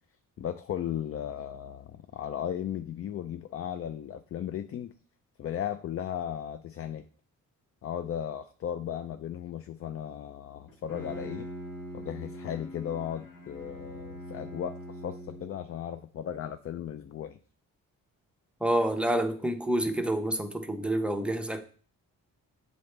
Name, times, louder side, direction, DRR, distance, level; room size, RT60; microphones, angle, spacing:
voice 1, 0.4-4.9 5.4-7.0 7.8-11.5 11.9-17.4, left 9 dB, 45° left, 0.4 m, -36 dB
Bowed string instrument, 10.7-15.8, equal, 75° left, 1.8 m, -42 dB
voice 2, 18.6-21.6, right 1 dB, 5° right, 0.7 m, -28 dB
7.6 x 4.0 x 3.2 m
cardioid pair, 95°, 33 cm